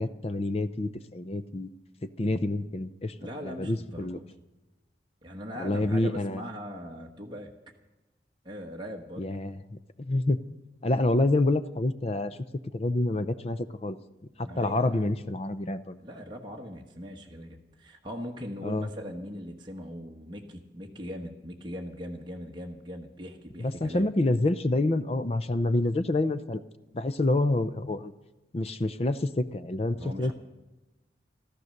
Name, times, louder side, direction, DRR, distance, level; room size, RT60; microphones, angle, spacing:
voice 1, 0.0-1.7 2.0-3.1 3.4-4.2 5.6-6.4 9.2-10.4 10.8-12.4 12.7-14.0 14.4-16.0 18.6-18.9 23.6-26.6 26.9-28.1 28.5-30.3, left 2 dB, 35° left, 13 dB, 0.5 m, -27 dB
voice 2, 3.2-4.2 5.2-7.5 8.4-9.3 14.4-15.1 16.0-24.1 30.0-30.3, equal, 25° right, 0 dB, 1.3 m, -40 dB
14.0 x 13.5 x 6.5 m, 1.0 s
head